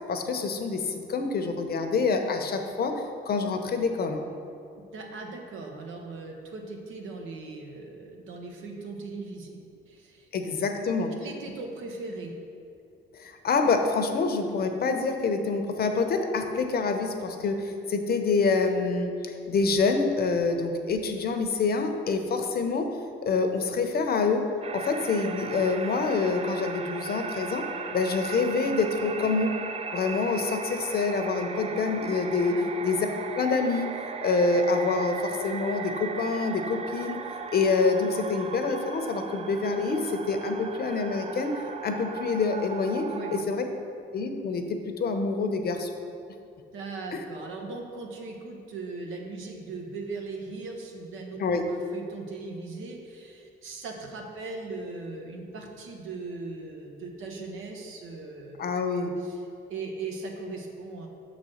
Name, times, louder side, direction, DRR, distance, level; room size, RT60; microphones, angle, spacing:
voice 1, 0.1-2.9 3.3-4.2 10.3-11.1 13.2-22.9 23.2-24.4 24.7-27.6 27.9-29.5 29.9-32.5 32.8-33.1 33.4-33.9 34.2-37.2 37.5-41.5 41.8-43.0 43.5-43.6 44.1-44.6 45.0-45.9 51.4-51.7 58.6-59.1, left 4 dB, 50° left, 5 dB, 0.8 m, -26 dB
voice 2, 4.9-10.3 10.9-12.4 32.5-32.7 43.1-43.4 46.7-51.4 51.7-58.6 59.2-59.4 59.7-61.1, right 3 dB, 90° right, 1 dB, 1.0 m, -39 dB
sound 1, 24.6-43.4, right 5 dB, 30° right, 0.4 m, -37 dB
6.2 x 4.1 x 6.3 m, 2.5 s
cardioid pair, 90°, 20 cm